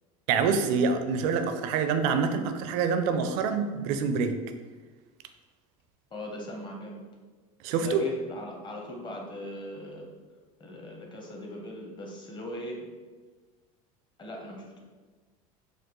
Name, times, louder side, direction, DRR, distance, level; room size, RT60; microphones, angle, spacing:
voice 1, 0.3-4.4 7.6-8.0, right 5 dB, 70° right, 8 dB, 0.4 m, -26 dB
voice 2, 6.1-7.0 7.8-10.1 10.6-12.8 14.2-14.8, left 1 dB, 25° left, 0 dB, 0.9 m, -39 dB
4.3 x 2.3 x 3.0 m, 1.3 s
hypercardioid pair, 90°, 19 cm